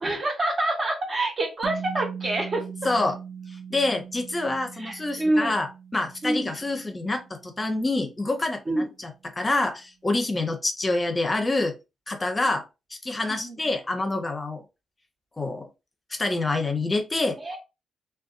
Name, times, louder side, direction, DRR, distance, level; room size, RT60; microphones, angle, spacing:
voice 1, 0.0-2.6 3.0-3.1 4.8-5.5 6.2-6.5 8.7-8.9 13.3-13.7 17.4-17.6, right 1 dB, 45° right, 1 dB, 1.0 m, -27 dB
sound 1, 1.6-8.1, right 7 dB, 70° right, 0.6 m, -40 dB
voice 2, 2.8-3.2 3.7-9.1 9.4-11.7 12.1-12.6 13.0-14.6 15.4-15.7 16.1-17.6, left 2 dB, 30° left, 6 dB, 0.5 m, -27 dB
2.5 x 2.2 x 2.4 m, 0.26 s
hypercardioid pair, 45°, 0 cm